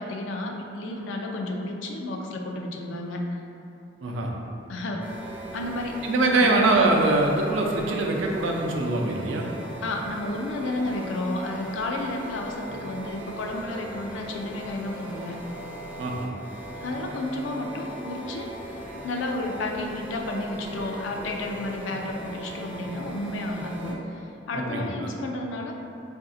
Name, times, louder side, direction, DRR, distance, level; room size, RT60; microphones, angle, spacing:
voice 1, 0.0-3.4 4.7-5.1 5.5-6.6 9.8-15.4 16.8-18.5 19.0-25.7, left 2 dB, 75° left, 2 dB, 0.4 m, -32 dB
sound 1, 5.0-23.9, right 1 dB, 10° right, 0.4 m, -39 dB
voice 2, 6.0-9.4 16.0-16.3 24.5-25.1, right 2 dB, 80° right, 0 dB, 0.5 m, -23 dB
4.7 x 2.5 x 2.5 m, 2.7 s
head